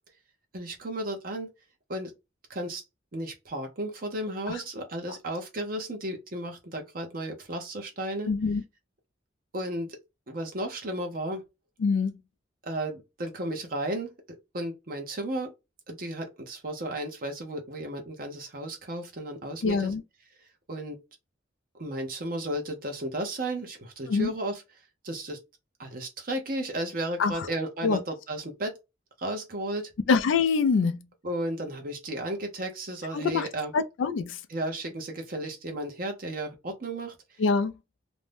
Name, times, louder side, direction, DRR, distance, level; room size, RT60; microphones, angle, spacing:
voice 1, 0.5-1.5 1.9-2.1 2.5-2.8 3.1-8.3 9.5-10.0 10.3-11.4 12.6-15.5 15.9-19.9 20.7-21.0 21.8-24.6 25.0-25.4 25.8-28.8 29.2-29.9 31.2-33.7 34.5-37.4, right 1 dB, 45° right, 0.6 m, -34 dB
voice 2, 8.3-8.6 11.8-12.2 19.6-20.0 24.1-24.3 27.2-27.5 27.8-28.0 30.1-31.0 33.1-33.5 33.7-34.4 37.4-37.7, left 5 dB, 75° left, 0.3 m, -25 dB
2.5 x 2.1 x 3.2 m
head